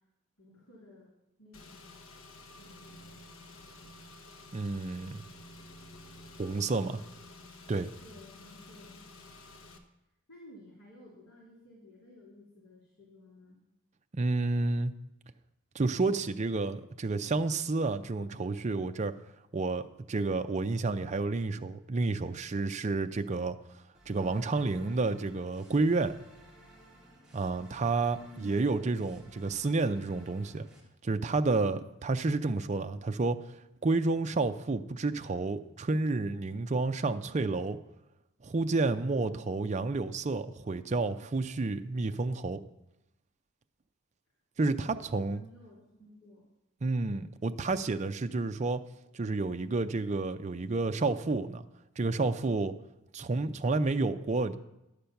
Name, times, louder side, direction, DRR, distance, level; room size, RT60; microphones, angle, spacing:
voice 1, 0.4-1.1 1.4-1.9 2.5-3.7 6.8-7.2 8.0-9.0 10.3-13.6 28.1-28.6 31.6-31.9 39.2-39.4 44.6-46.4, left 1 dB, 85° left, -5 dB, 3.0 m, -54 dB
Car / Engine, 1.5-9.8, left 2 dB, 70° left, 1.0 m, -51 dB
voice 2, 4.5-5.2 6.4-6.9 7.7-7.9 14.1-14.9 15.7-19.1 19.5-23.6 24.1-26.1 27.3-30.7 31.0-33.4 33.8-37.8 38.4-42.6 44.6-45.4 46.8-48.8 49.1-51.6 52.0-52.7 53.1-54.6, right 3 dB, 30° right, 9 dB, 0.4 m, -30 dB
sound 1, 23.9-30.8, right 1 dB, 5° right, 1.9 m, -56 dB
11.5 x 6.7 x 5.8 m, 0.89 s
head